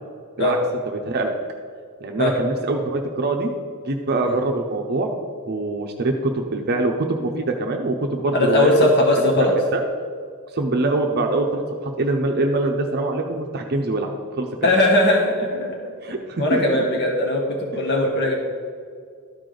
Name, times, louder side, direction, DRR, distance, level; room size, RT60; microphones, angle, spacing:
voice 1, 0.9-1.3 2.0-3.5 3.8-5.1 5.5-8.9 9.2-9.8 10.5-14.7 16.0-16.8, right 2 dB, 45° right, 3 dB, 0.6 m, -24 dB
voice 2, 8.3-9.6 14.6-15.8 16.4-18.3, left 1 dB, 50° left, 0 dB, 1.2 m, -19 dB
12.5 x 4.9 x 3.9 m, 2.1 s
head